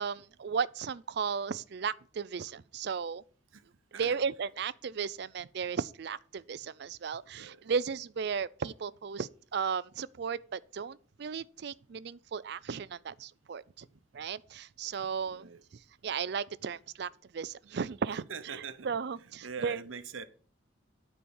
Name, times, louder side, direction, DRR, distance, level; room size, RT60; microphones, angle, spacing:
voice 1, 0.0-3.2 3.9-13.8 14.1-18.6 18.8-19.8, right 6 dB, 55° right, 0.4 m, -35 dB
voice 2, 7.2-7.7 15.2-15.6 17.7-18.9 19.4-20.3, right 5 dB, 90° right, 0.9 m, -43 dB
9.5 x 4.8 x 7.1 m
head